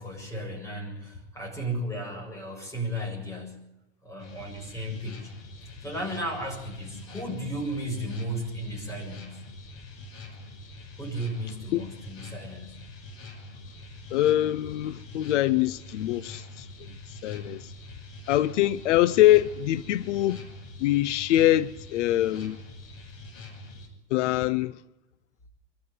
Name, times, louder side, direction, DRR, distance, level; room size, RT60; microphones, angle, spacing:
voice 1, 0.0-3.7 4.0-5.3 5.6-9.4 11.0-12.8, right 1 dB, 10° left, 7.4 m, -34 dB
sound 1, 4.2-23.9, left 2 dB, 35° left, 5.7 m, -44 dB
voice 2, 14.1-16.7 17.1-17.7 18.3-20.4 20.8-22.6 24.1-24.8, left 14 dB, 75° left, 0.9 m, -24 dB
24.0 x 14.0 x 9.5 m
supercardioid pair, 145°, 36 cm